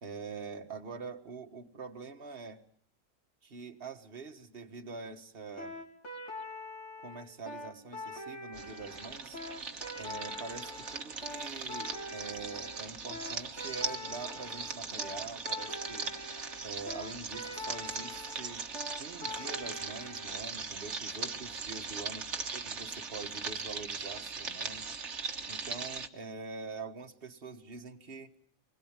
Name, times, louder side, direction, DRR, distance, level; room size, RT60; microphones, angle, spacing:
voice 1, 0.0-2.6 3.4-5.8 7.0-9.4 10.0-16.1 16.6-18.6 19.0-22.3 22.5-24.9 25.5-28.3, right 4 dB, 45° right, 4 dB, 1.8 m, -44 dB
sound 1, 5.6-20.4, left 2 dB, 60° left, 4.0 m, -44 dB
sound 2, 8.5-26.1, right 5 dB, 60° right, 1.7 m, -39 dB
26.0 x 21.0 x 8.9 m, 0.63 s
omnidirectional pair, 1.3 m